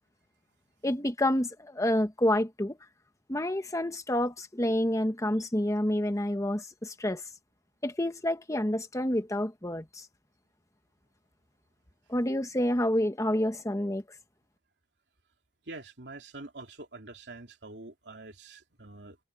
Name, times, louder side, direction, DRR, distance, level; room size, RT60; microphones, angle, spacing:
voice 1, 0.8-2.8 3.3-7.2 7.8-10.1 12.1-14.0, left 1 dB, 20° left, 1.2 m, -28 dB
voice 2, 15.7-19.2, right 2 dB, 75° right, 3.1 m, -45 dB
head